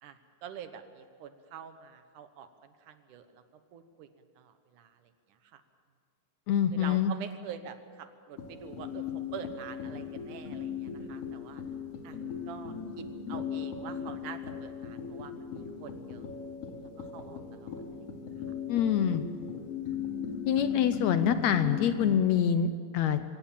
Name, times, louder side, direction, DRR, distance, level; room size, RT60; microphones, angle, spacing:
voice 1, 0.0-3.4 3.7-4.1 4.4-5.1 5.5-5.6 6.7-9.1 9.3-11.6 12.0-12.2 12.5-16.3 16.8-17.7, right 8 dB, 75° right, 9 dB, 2.6 m, -46 dB
voice 2, 6.5-7.1 18.7-19.3 20.5-23.2, left 8 dB, 75° left, 10 dB, 1.8 m, -26 dB
sound 1, 8.4-22.2, left 6 dB, 50° left, 3.0 m, -38 dB
24.5 x 17.5 x 7.5 m, 2.1 s
omnidirectional pair, 3.8 m